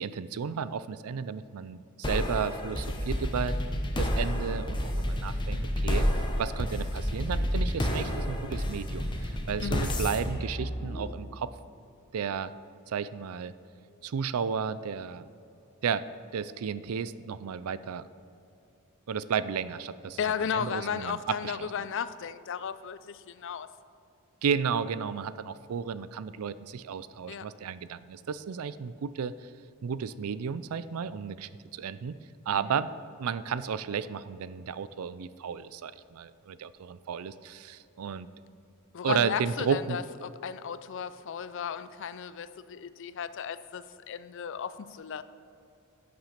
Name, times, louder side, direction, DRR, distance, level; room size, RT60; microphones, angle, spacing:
voice 1, 0.0-3.5 4.0-6.1 6.4-11.5 12.1-12.5 12.9-13.5 14.0-15.3 15.8-16.0 16.3-18.1 19.1-20.2 20.5-21.7 24.4-29.3 29.8-32.2 32.5-32.9 33.2-38.3 39.0-40.0, right 6 dB, 80° right, 15 dB, 0.4 m, -33 dB
sound 1, 2.0-11.5, equal, 20° left, 0.8 m, -30 dB
voice 2, 20.2-23.7 27.3-27.5 32.5-32.7 38.9-45.2, left 7 dB, 60° left, 14 dB, 0.4 m, -35 dB
11.0 x 6.1 x 5.8 m, 2.7 s
head